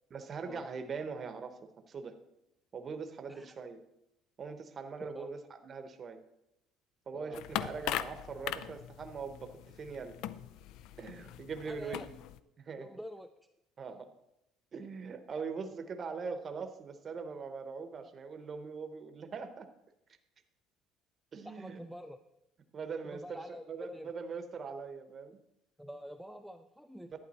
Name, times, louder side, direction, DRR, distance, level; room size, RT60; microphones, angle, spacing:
voice 1, 0.1-1.6 1.9-2.2 2.7-3.8 4.4-5.4 5.6-6.2 7.1-10.2 11.0-12.2 12.6-12.9 13.8-14.1 14.7-19.7 21.3-21.8 22.7-25.4, right 5 dB, 30° right, 7 dB, 0.9 m, -41 dB
voice 2, 5.0-5.3 7.1-7.4 11.7-12.1 12.8-13.3 21.4-22.2 23.0-24.1 25.8-27.1, equal, ahead, 8 dB, 0.4 m, -46 dB
sound 1, 7.3-12.4, left 12 dB, 70° left, 0.4 m, -40 dB
11.5 x 9.1 x 4.1 m, 0.85 s
cardioid pair, 150°, 0 cm